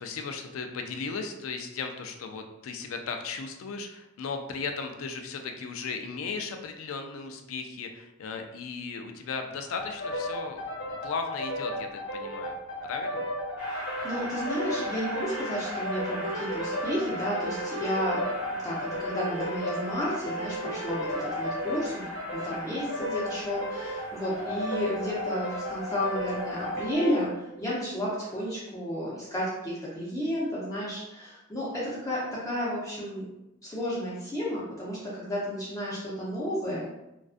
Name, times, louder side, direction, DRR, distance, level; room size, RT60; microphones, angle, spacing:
voice 1, 0.0-10.6 11.0-12.6 12.9-13.3, left 4 dB, 85° left, 5 dB, 0.3 m, -36 dB
sound 1, 9.8-27.2, equal, 60° left, 0.8 m, -34 dB
Train, 13.6-26.9, equal, 5° right, 0.8 m, -42 dB
voice 2, 13.7-18.2 18.6-33.3 33.6-36.9, equal, 15° left, -7 dB, 0.5 m, -32 dB
sound 2, 24.2-28.4, equal, 45° right, 0.7 m, -43 dB
2.4 x 2.2 x 2.4 m, 0.90 s
head